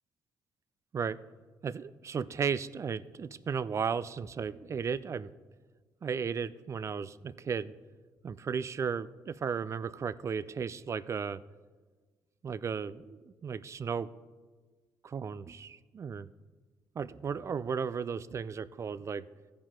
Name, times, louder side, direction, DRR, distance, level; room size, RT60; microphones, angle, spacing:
voice 1, 1.6-5.3 6.0-7.7 8.2-11.4 12.4-14.1 15.0-16.3 17.0-19.3, right 6 dB, 40° right, 15 dB, 0.4 m, -35 dB
15.0 x 5.1 x 3.7 m, 1.4 s
supercardioid pair, 70°, 8 cm